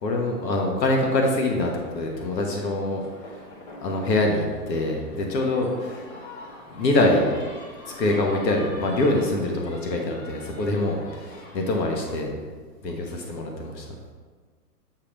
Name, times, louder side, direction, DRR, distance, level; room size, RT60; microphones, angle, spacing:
voice 1, 0.0-3.0 3.8-6.0 6.7-7.3 7.8-12.3 12.8-13.9, left 2 dB, 85° left, 1 dB, 1.4 m, -24 dB
sound 1, 1.6-12.1, left 1 dB, 45° left, 1.6 m, -44 dB
8.2 x 3.4 x 5.1 m, 1.5 s
hypercardioid pair, 155°, 49 cm